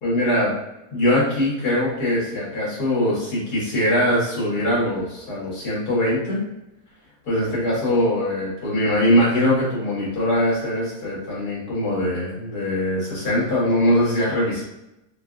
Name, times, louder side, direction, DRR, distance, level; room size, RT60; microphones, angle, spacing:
voice 1, 0.0-0.5 0.9-6.4 7.3-14.6, left 1 dB, 80° left, -7 dB, 2.1 m, -22 dB
5.2 x 2.4 x 2.3 m, 0.89 s
omnidirectional pair, 1.6 m